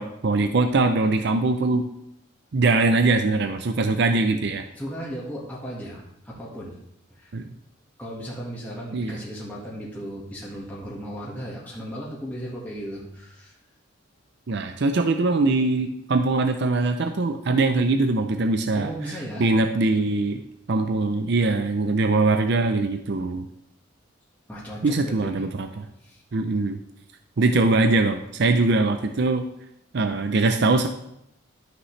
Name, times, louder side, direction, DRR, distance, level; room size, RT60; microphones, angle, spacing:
voice 1, 0.0-1.9 2.5-4.6 7.3-7.5 8.9-9.2 14.5-20.4 20.7-23.5 24.8-25.8 26.3-26.8 27.4-29.4 29.9-30.9, right 3 dB, 55° right, 6 dB, 0.5 m, -22 dB
voice 2, 4.7-6.7 7.1-7.3 8.0-13.5 18.7-19.5 24.5-25.5 26.0-26.2, equal, 10° left, -6 dB, 1.6 m, -36 dB
12.5 x 6.0 x 3.2 m, 0.79 s
head